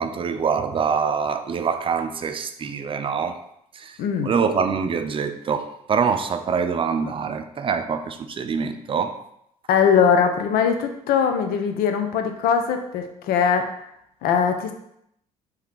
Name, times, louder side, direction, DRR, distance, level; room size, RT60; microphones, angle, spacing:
voice 1, 0.0-3.4 3.7-4.0 4.2-9.1, right 6 dB, 30° right, 8 dB, 0.4 m, -25 dB
voice 2, 4.0-4.3 9.7-13.7 14.2-14.7, left 7 dB, 60° left, 6 dB, 0.5 m, -21 dB
3.3 x 2.8 x 3.7 m, 0.76 s
figure-of-eight pair, 50°, 18 cm